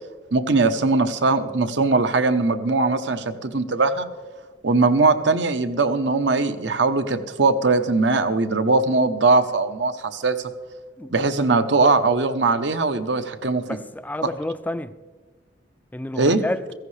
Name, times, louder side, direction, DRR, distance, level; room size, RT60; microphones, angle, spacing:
voice 1, 0.3-4.1 4.6-10.5 11.1-13.6 16.1-16.4, right 3 dB, 75° right, 0.8 m, -20 dB
voice 2, 11.0-11.5 13.7-14.9 15.9-16.6, left 1 dB, 10° left, 0.4 m, -30 dB
16.5 x 15.0 x 3.3 m
head